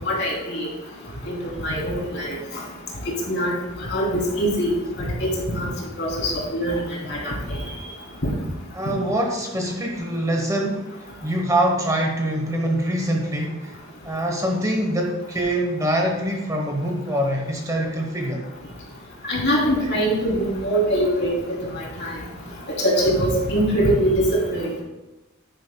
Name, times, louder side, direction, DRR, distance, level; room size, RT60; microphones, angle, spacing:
voice 1, 0.0-0.7 1.2-1.4 1.6-2.4 3.3-3.5 3.9-4.7 5.2-5.7 6.0-6.8 7.1-7.6 8.2-8.3 19.3-21.3 21.7-22.1 22.8-24.2 24.5-24.8, equal, 55° left, -4 dB, 3.3 m, -22 dB
voice 2, 8.7-11.0 11.2-13.7 14.0-18.4, right 1 dB, 15° right, 1 dB, 1.0 m, -24 dB
10.5 x 9.8 x 2.2 m, 1.1 s
head